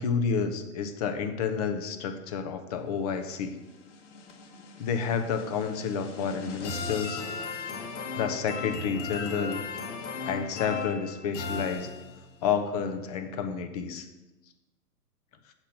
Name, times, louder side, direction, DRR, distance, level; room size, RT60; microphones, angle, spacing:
voice 1, 0.0-3.6 4.8-7.2 8.1-9.6 10.2-11.9 12.4-14.1, left 6 dB, 25° left, 8 dB, 0.6 m, -30 dB
sound 1, 3.4-12.4, left 4 dB, 50° left, 1.2 m, -37 dB
8.1 x 4.3 x 6.7 m, 1.1 s
hypercardioid pair, 125°, 47 cm